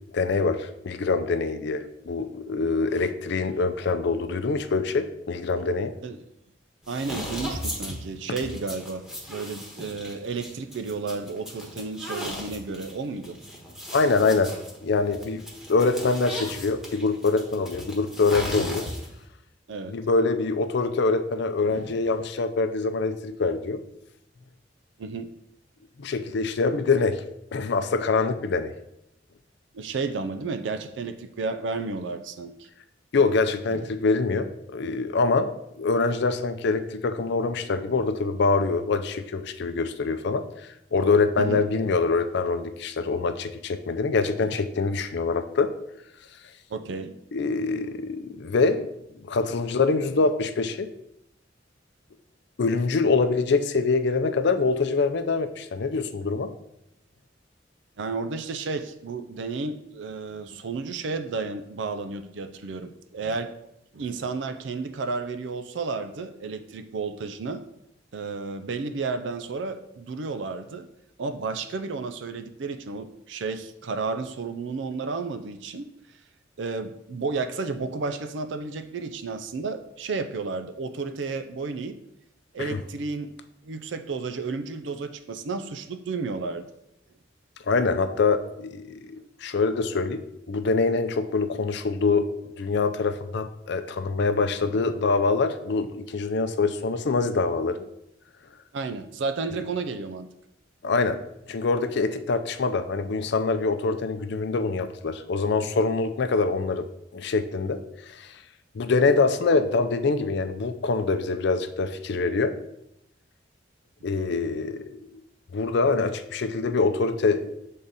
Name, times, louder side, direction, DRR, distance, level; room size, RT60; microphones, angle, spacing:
voice 1, 0.1-5.9 13.9-14.5 14.8-15.4 15.7-18.9 19.9-23.8 26.0-27.2 27.5-28.7 33.1-35.5 35.8-40.4 40.9-45.7 47.3-48.9 49.2-50.9 52.6-56.5 82.6-82.8 87.7-90.2 90.5-92.3 92.6-97.8 100.8-101.2 101.5-106.9 107.1-108.3 108.7-112.5 114.0-115.2 115.5-117.5, left 4 dB, 65° left, 9 dB, 0.5 m, -24 dB
sound 1, 6.8-19.3, equal, 5° right, 1.2 m, -37 dB
voice 2, 6.9-13.4 19.7-20.0 21.7-22.2 25.0-25.3 29.7-32.7 33.7-33.9 41.4-41.6 44.4-44.5 46.7-47.2 49.4-49.5 58.0-63.5 63.9-67.6 68.1-70.9 71.2-75.9 76.6-82.0 82.5-83.4 83.6-86.7 94.7-94.8 98.7-100.3, right 4 dB, 70° right, 9 dB, 0.5 m, -32 dB
6.9 x 3.7 x 4.0 m, 0.82 s
head